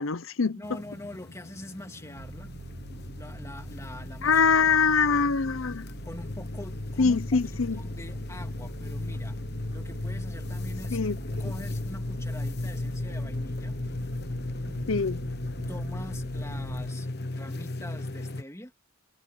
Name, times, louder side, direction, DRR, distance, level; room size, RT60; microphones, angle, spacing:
voice 1, 0.0-0.6 4.2-5.9 7.0-7.8 10.9-11.2 14.9-15.2, left 5 dB, 80° left, 0.8 m, -23 dB
voice 2, 0.5-2.5 3.2-4.7 6.0-9.4 9.7-11.0 11.4-13.8 15.7-18.7, left 1 dB, 15° left, 2.5 m, -44 dB
sound 1, 0.6-18.4, left 2 dB, 55° left, 1.2 m, -36 dB
sound 2, 2.2-16.9, right 1 dB, 55° right, 1.4 m, -42 dB
head